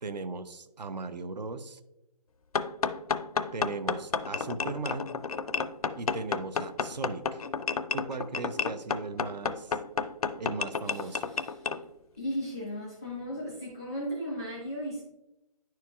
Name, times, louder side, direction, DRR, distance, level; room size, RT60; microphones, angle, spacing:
voice 1, 0.0-1.8 3.5-5.1 6.0-7.4 7.9-9.8 10.4-11.2, right 4 dB, 80° right, 11 dB, 0.7 m, -37 dB
sound 1, 2.5-11.8, left 5 dB, 60° left, 0.4 m, -31 dB
voice 2, 10.8-11.8 12.2-15.0, equal, 5° right, -5 dB, 0.5 m, -36 dB
10.5 x 4.6 x 2.3 m, 0.92 s
hypercardioid pair, 180°, 21 cm